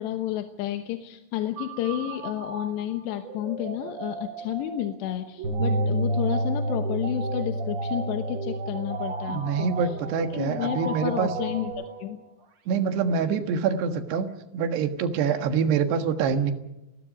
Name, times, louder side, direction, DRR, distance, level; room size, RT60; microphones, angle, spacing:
voice 1, 0.0-12.2, left 12 dB, 85° left, 6 dB, 3.3 m, -31 dB
sound 1, 1.6-12.3, right 4 dB, 45° right, 2.8 m, -36 dB
Bass guitar, 5.4-11.7, right 1 dB, 25° right, 6.5 m, -30 dB
voice 2, 9.3-11.3 12.7-14.3 14.5-16.5, right 6 dB, 75° right, 7 dB, 3.6 m, -25 dB
29.0 x 20.5 x 5.2 m, 0.94 s
omnidirectional pair, 4.9 m